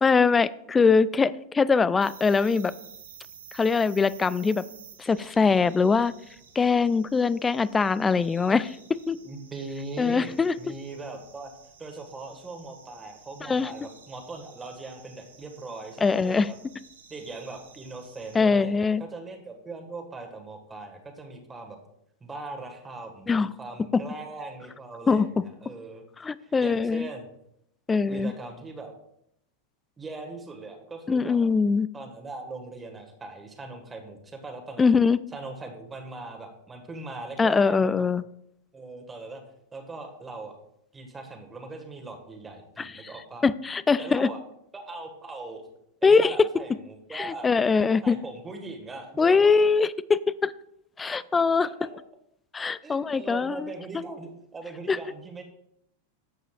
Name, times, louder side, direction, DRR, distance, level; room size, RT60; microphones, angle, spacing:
voice 1, 0.0-2.7 3.5-4.6 5.0-6.1 6.6-8.8 9.1-9.2 10.0-10.5 13.5-13.7 16.0-16.5 18.3-19.0 23.3-23.5 23.9-24.0 25.1-25.3 26.2-27.1 27.9-28.3 31.1-31.9 34.8-35.2 37.4-38.2 42.8-43.1 43.4-44.3 46.0-46.4 47.1-48.2 49.2-50.5 51.0-51.7 52.5-53.6 54.9-55.0, left 5 dB, 15° left, 19 dB, 0.3 m, -22 dB
sound 1, 2.0-18.4, right 7 dB, 65° right, 2.0 m, -52 dB
voice 2, 9.2-11.5 11.8-16.5 17.1-21.8 22.2-26.0 26.4-27.3 28.1-28.9 30.0-31.4 31.9-34.8 35.3-38.0 38.7-39.4 39.7-40.6 40.9-43.4 44.0-44.4 44.7-45.6 46.0-49.6 51.0-51.2 52.8-55.4, right 3 dB, 15° right, 3 dB, 1.6 m, -40 dB
13.0 x 7.9 x 2.4 m, 0.75 s
figure-of-eight pair, 90°, 0 cm